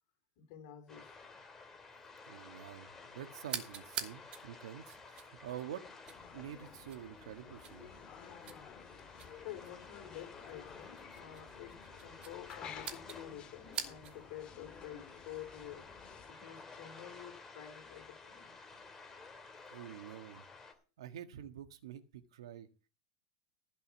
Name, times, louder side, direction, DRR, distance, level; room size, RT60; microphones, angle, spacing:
voice 1, 0.4-1.1 9.4-15.9 16.4-18.5, left 11 dB, 65° left, 3.6 m, -49 dB
sound 1, 0.9-20.7, left 4 dB, 15° left, 2.7 m, -54 dB
voice 2, 2.3-2.9 3.1-5.8 6.3-7.9 19.7-20.4 21.0-22.7, right 10 dB, 90° right, 1.7 m, -47 dB
sound 2, 3.4-14.3, right 8 dB, 35° right, 2.7 m, -48 dB
sound 3, 6.0-16.3, left 7 dB, 35° left, 2.0 m, -53 dB
15.5 x 5.6 x 7.3 m
supercardioid pair, 130°, 3 cm